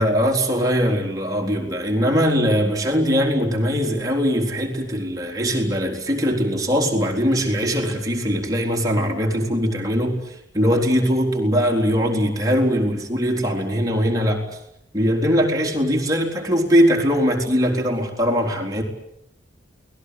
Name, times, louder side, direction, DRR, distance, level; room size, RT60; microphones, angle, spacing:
voice 1, 0.0-10.2 10.5-14.5 14.9-18.8, equal, 20° right, 0 dB, 4.0 m, -21 dB
29.0 x 19.5 x 8.4 m, 0.76 s
head